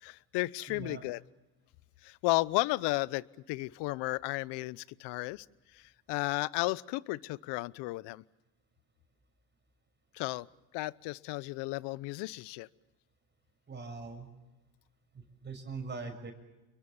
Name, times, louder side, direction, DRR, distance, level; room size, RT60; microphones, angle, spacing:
voice 1, 0.0-1.2 2.0-5.4 5.7-5.8 6.1-8.2 10.1-10.5 10.7-12.7, left 21 dB, 65° left, 20 dB, 0.9 m, -33 dB
voice 2, 0.7-1.0 13.7-14.3 15.1-16.3, right 4 dB, 25° right, 6 dB, 6.6 m, -42 dB
29.5 x 23.0 x 7.2 m, 1.0 s
supercardioid pair, 100°, 44 cm